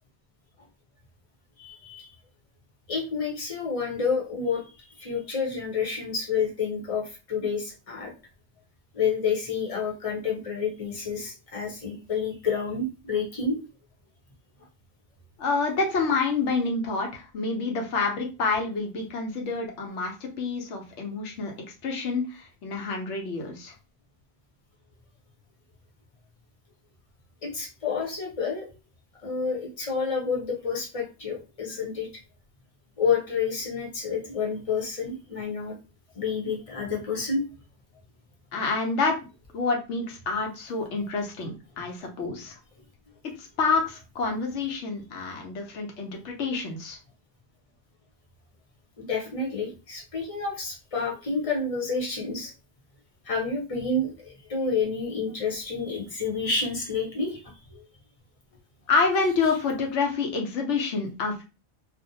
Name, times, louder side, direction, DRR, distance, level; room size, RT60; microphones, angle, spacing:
voice 1, 1.6-2.2 2.9-8.1 8.9-13.6 27.4-28.7 29.2-32.1 33.0-35.8 36.1-37.4 49.0-52.5 53.2-57.8, left 5 dB, 35° left, -1 dB, 0.7 m, -29 dB
voice 2, 15.4-21.5 21.8-23.7 38.5-39.1 39.5-42.5 43.4-47.0 58.9-61.4, left 4 dB, 85° left, 2 dB, 1.0 m, -28 dB
2.4 x 2.1 x 2.7 m, 0.30 s
omnidirectional pair, 1.2 m